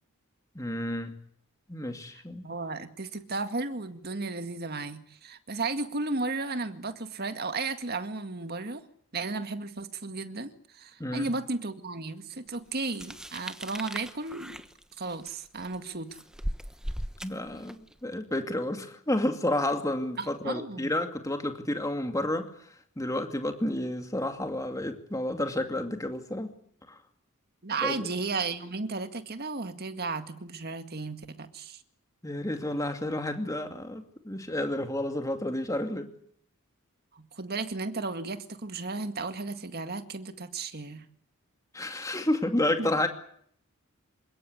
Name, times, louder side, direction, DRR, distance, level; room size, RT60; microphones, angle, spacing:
voice 1, 0.5-1.1 1.7-2.4 11.0-11.3 17.2-22.5 23.0-26.5 26.9-27.0 27.8-28.1 32.2-36.1 41.7-43.1, left 1 dB, 15° left, 6 dB, 2.4 m, -30 dB
voice 2, 2.1-8.8 9.1-14.6 15.0-16.2 20.2-20.9 27.6-31.8 37.1-41.1 42.8-42.9, right 3 dB, 45° right, 9 dB, 1.9 m, -34 dB
sound 1, 12.8-17.9, equal, 5° right, 1.1 m, -38 dB
27.5 x 17.0 x 9.6 m, 0.64 s
head